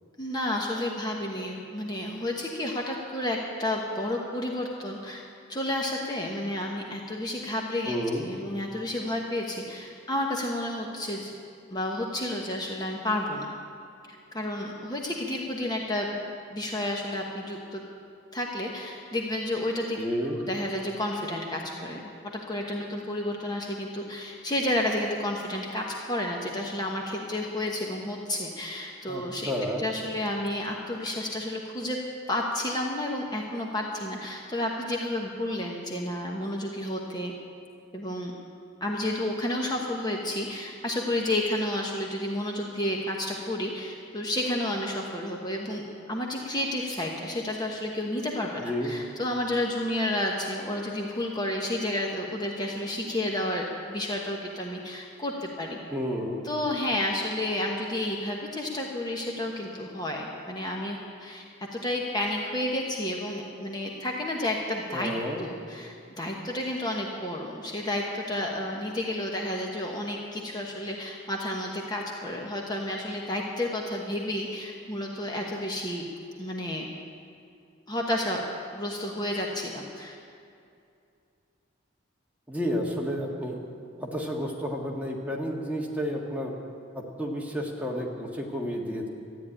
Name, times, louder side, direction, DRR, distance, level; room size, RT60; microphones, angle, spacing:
voice 1, 0.2-5.2 5.5-11.3 11.7-13.5 14.1-16.2 16.5-17.8 18.3-29.5 29.8-32.0 32.3-37.3 37.9-38.3 38.8-55.8 56.4-61.4 61.7-65.1 65.4-76.0 76.4-76.9 77.9-78.4 78.7-80.2, left 1 dB, 20° left, -1 dB, 1.2 m, -31 dB
voice 2, 7.8-8.3 20.0-20.4 29.1-29.9 48.6-48.9 55.9-56.5 64.9-65.4 82.5-83.6 84.0-86.5 86.9-89.1, equal, 5° right, -2 dB, 1.6 m, -31 dB
13.5 x 9.5 x 9.9 m, 2.5 s
head